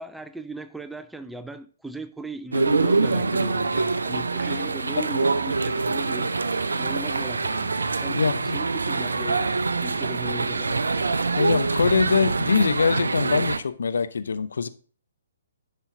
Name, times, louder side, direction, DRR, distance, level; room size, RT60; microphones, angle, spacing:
voice 1, 0.0-8.2 8.5-10.8, right 2 dB, 5° right, 0.3 m, -38 dB
sound 1, 2.5-13.6, right 3 dB, 70° right, 0.5 m, -25 dB
voice 2, 8.1-8.6 11.4-14.7, left 5 dB, 60° left, 0.6 m, -23 dB
11.0 x 5.6 x 3.6 m
figure-of-eight pair, 130°, 0 cm